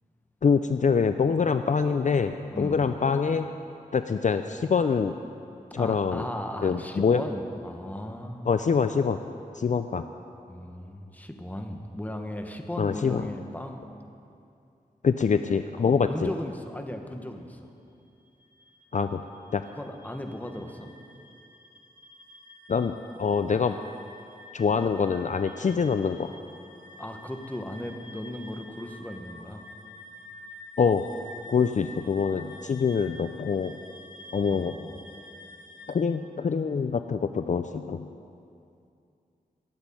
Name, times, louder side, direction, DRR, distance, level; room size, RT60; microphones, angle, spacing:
voice 1, 0.4-3.5 3.9-5.1 5.7-6.3 6.6-7.2 8.5-9.2 9.5-10.0 12.8-13.3 15.0-16.3 18.9-19.2 19.5-19.6 22.7-23.8 24.5-26.3 30.8-31.0 31.5-33.8 34.3-34.7 35.9-38.1, left 5 dB, 55° left, 9 dB, 0.4 m, -25 dB
voice 2, 2.5-2.8 5.8-8.5 10.5-13.8 15.8-17.7 19.7-20.9 27.0-29.6 34.5-35.0, left 1 dB, 10° left, 4 dB, 1.2 m, -36 dB
sound 1, 18.1-36.0, left 1 dB, 30° left, 3.1 m, -49 dB
12.5 x 8.2 x 9.7 m, 2.5 s
wide cardioid pair, 90°, 15 cm